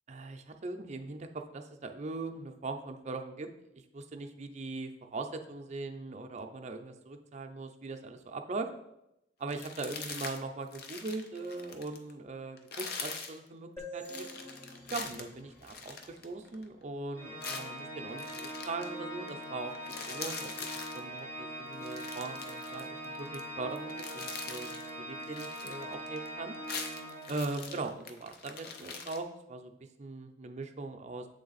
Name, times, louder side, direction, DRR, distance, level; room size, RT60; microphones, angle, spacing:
voice 1, 0.1-3.5 3.9-8.7 9.4-14.3 14.9-19.7 20.1-20.7 20.9-24.8 25.1-26.5 27.3-29.7 30.0-31.3, right 3 dB, 40° right, 5 dB, 0.5 m, -40 dB
sound 1, 9.5-10.4 10.7-12.1 12.6-13.4 14.0-16.7 17.4-18.9 19.3-19.4 19.7-21.0 21.7-23.4 23.7-24.9 25.2-26.3 26.5-29.2, left 5 dB, 60° left, 0.6 m, -43 dB
sound 2, 13.8-17.3, equal, 15° left, 0.9 m, -48 dB
Organ, 17.1-27.8, right 1 dB, 80° left, 2.2 m, -42 dB
7.6 x 3.4 x 4.0 m, 0.87 s
head